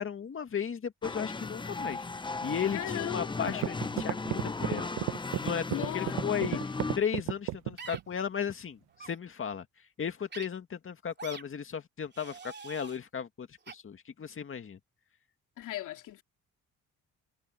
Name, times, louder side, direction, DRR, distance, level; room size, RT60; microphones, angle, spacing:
voice 1, 0.0-2.1 2.4-4.9 5.4-6.6 7.0-9.7 10.0-14.8, left 7 dB, 45° left, 2.3 m, -35 dB
sound 1, 1.0-7.0, left 3 dB, 15° left, 0.7 m, -36 dB
voice 2, 2.7-3.6 5.7-6.2 6.5-6.6 15.6-16.2, left 13 dB, 80° left, 3.0 m, -37 dB
sound 2, 3.0-3.1 3.5-8.1, right 15 dB, 90° right, 0.9 m, -32 dB
sound 3, 7.8-8.0 8.9-9.1 10.3-10.5 11.2-11.4 12.1-13.0 13.7-13.8, right 5 dB, 35° right, 2.9 m, -44 dB
cardioid pair, 90°, 30 cm